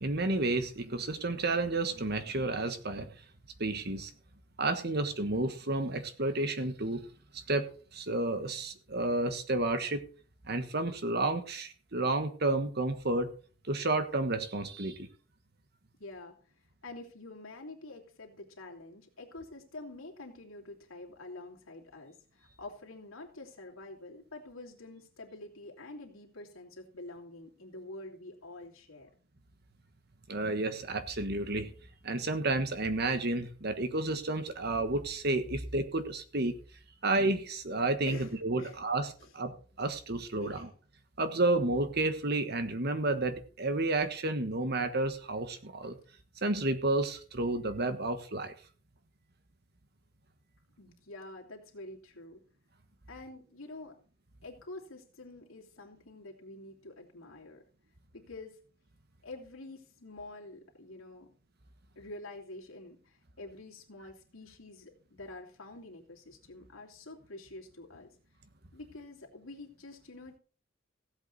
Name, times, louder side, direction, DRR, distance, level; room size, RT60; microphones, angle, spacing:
voice 1, 0.0-3.1 3.6-4.1 4.6-7.0 7.3-7.7 7.9-10.0 10.5-13.3 13.7-15.1 30.3-31.7 32.0-36.6 37.0-40.7 41.2-46.0 46.4-48.5, right 2 dB, 50° right, 9 dB, 1.4 m, -31 dB
voice 2, 16.0-16.4 16.8-29.1 38.1-38.8 39.2-39.3 40.4-40.7 50.8-52.4 53.1-54.0 54.4-57.6 58.1-58.6 59.2-61.3 61.9-68.1 68.7-70.4, left 2 dB, 85° left, -1 dB, 2.9 m, -47 dB
15.5 x 8.2 x 4.0 m, 0.41 s
head